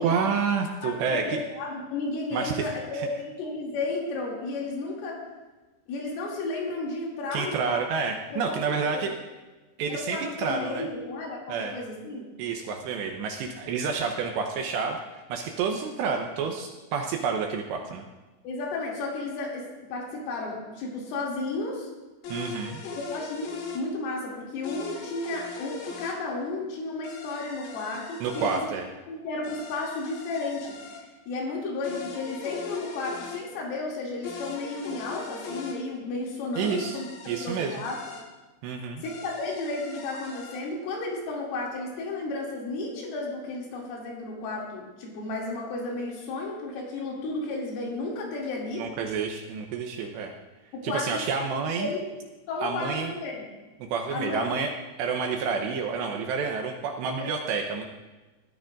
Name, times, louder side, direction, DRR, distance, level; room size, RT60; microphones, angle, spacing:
voice 1, 0.0-1.4 2.3-2.6 2.9-3.1 7.3-9.1 9.8-10.8 11.5-11.8 12.4-18.1 22.3-22.8 28.2-28.9 36.6-37.0 37.3-37.8 38.6-39.0 48.8-50.3 50.8-51.9 52.6-53.1 53.8-54.7 55.0-57.9, right 5 dB, 80° right, 3 dB, 2.6 m, -29 dB
voice 2, 0.8-5.2 5.9-7.9 8.3-8.6 8.9-9.0 9.9-12.2 18.4-21.9 23.0-23.5 23.7-28.7 29.1-31.0 31.3-38.1 39.0-48.9 50.7-51.2 51.8-52.0 52.5-53.5 54.1-54.5, left 3 dB, 80° left, -3 dB, 5.1 m, -33 dB
sound 1, 22.2-23.8 24.6-26.2 27.0-28.6 29.4-31.0 31.8-33.4 34.2-35.8 36.6-38.2 39.0-40.6, left 4 dB, 65° left, 2.5 m, -40 dB
21.0 x 13.0 x 2.5 m, 1.2 s
omnidirectional pair, 5.7 m